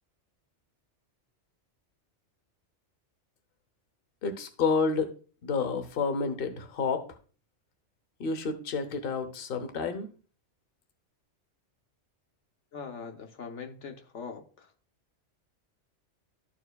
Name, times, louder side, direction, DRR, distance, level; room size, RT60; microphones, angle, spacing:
voice 1, 4.2-5.1 5.4-7.0 8.2-10.1, left 4 dB, 55° left, 8 dB, 1.0 m, -29 dB
voice 2, 12.7-14.7, left 5 dB, 80° left, 4 dB, 1.2 m, -42 dB
13.5 x 4.5 x 2.3 m, 0.39 s
omnidirectional pair, 1.2 m